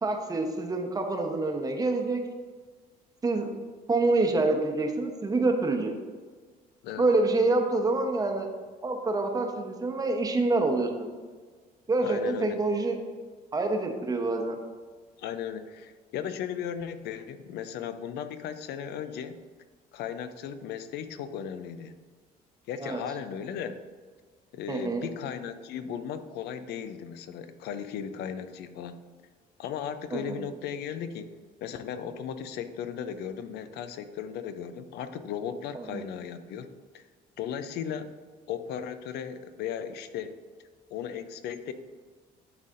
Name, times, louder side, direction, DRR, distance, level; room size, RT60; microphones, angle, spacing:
voice 1, 0.0-2.2 3.2-3.5 3.9-5.9 7.0-8.5 8.8-11.1 11.9-13.0 13.5-14.6 22.8-23.0 24.7-25.0 30.1-30.5 35.7-36.0, right 2 dB, 20° right, 4 dB, 0.9 m, -26 dB
voice 2, 12.0-12.6 15.2-19.4 19.9-21.9 22.7-23.8 24.5-28.9 29.6-31.3 31.6-36.7 36.9-37.0 37.4-38.1 38.5-40.4 40.9-41.7, left 8 dB, 75° left, 11 dB, 0.5 m, -36 dB
11.0 x 4.1 x 2.5 m, 1.5 s
cardioid pair, 110°, 17 cm